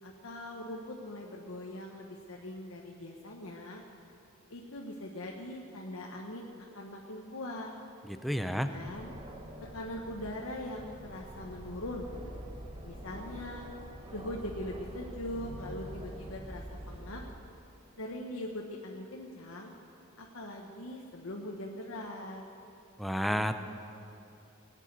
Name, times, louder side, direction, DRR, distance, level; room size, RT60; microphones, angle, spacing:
voice 1, 0.0-3.8 4.5-7.7 8.5-9.2 9.7-12.1 12.8-13.7 14.1-17.2 18.0-19.7 20.2-22.4, left 1 dB, 75° left, 0 dB, 1.2 m, -41 dB
voice 2, 8.0-8.7 23.0-23.6, equal, ahead, 8 dB, 0.6 m, -31 dB
Aircraft, 8.9-17.3, right 1 dB, 25° right, 1.2 m, -46 dB
sound 1, 11.7-17.9, left 2 dB, 75° right, 2.6 m, -55 dB
18.0 x 7.5 x 9.4 m, 2.7 s
head